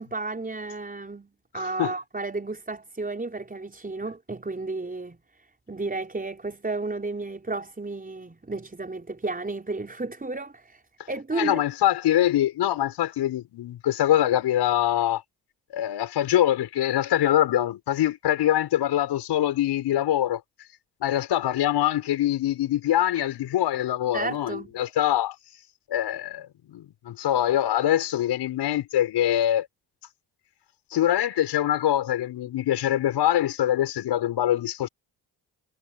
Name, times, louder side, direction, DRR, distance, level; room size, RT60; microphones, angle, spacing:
voice 1, 0.0-5.2 5.7-10.8 11.1-11.6 24.1-24.7, right 3 dB, 20° right, 5.4 m, -32 dB
voice 2, 1.5-1.9 11.4-15.2 15.7-20.4 21.0-25.4 25.9-29.7 30.9-34.9, left 12 dB, 75° left, 6.4 m, -24 dB
supercardioid pair, 65°, 41 cm